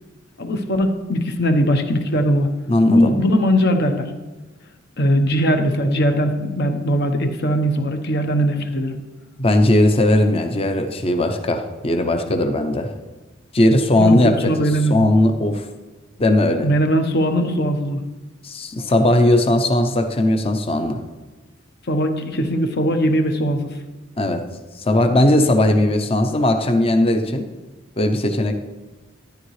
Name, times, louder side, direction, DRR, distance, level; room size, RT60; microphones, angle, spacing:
voice 1, 0.4-2.5 2.9-4.1 5.0-9.0 14.0-15.0 16.6-18.0 21.9-23.7, equal, 55° left, 6 dB, 1.0 m, -20 dB
voice 2, 2.7-3.2 9.4-12.9 13.5-14.5 14.9-15.7 16.2-16.7 18.4-21.0 24.2-24.4 24.8-27.4 28.0-28.5, left 1 dB, 30° left, 7 dB, 0.7 m, -18 dB
13.0 x 10.0 x 3.2 m, 1.2 s
head